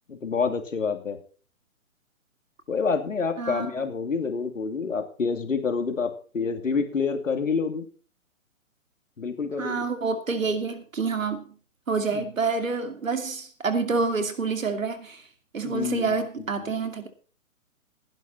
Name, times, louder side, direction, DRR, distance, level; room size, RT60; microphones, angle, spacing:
voice 1, 0.1-1.2 2.7-7.9 9.2-9.8 12.1-12.3 15.6-16.1 16.6-16.7, left 5 dB, 65° left, 2.8 m, -28 dB
voice 2, 3.4-3.7 9.6-11.4 11.9-15.2 15.5-17.1, right 4 dB, 70° right, 2.5 m, -27 dB
16.5 x 11.0 x 4.1 m
figure-of-eight pair, 135°, 41 cm